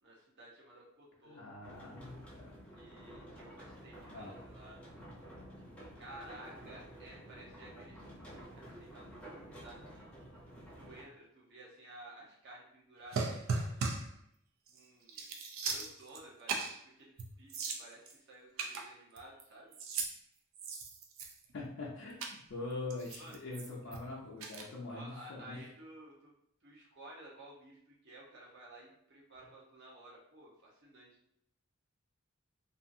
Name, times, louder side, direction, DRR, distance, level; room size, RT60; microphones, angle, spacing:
voice 1, 0.0-1.4 2.8-4.8 6.0-8.0 8.3-10.1 10.8-13.9 14.7-15.3 15.6-19.8 23.2-23.4 24.9-26.3 26.6-31.2, right 1 dB, 55° right, -3 dB, 0.8 m, -54 dB
voice 2, 1.3-2.5 4.1-4.3 21.5-25.6, left 3 dB, 60° left, -4 dB, 0.5 m, -43 dB
sound 1, 1.6-11.0, equal, 5° left, 0.6 m, -51 dB
sound 2, 13.1-14.1 14.7-14.8 15.1-16.2 16.5-16.8 17.2-17.3 17.5-18.1 18.6-19.4 19.7-20.1 20.5-21.5 22.2-22.4 22.9-24.0 24.4-24.6, right 4 dB, 75° right, 0.4 m, -37 dB
2.7 x 2.4 x 2.6 m, 0.73 s
head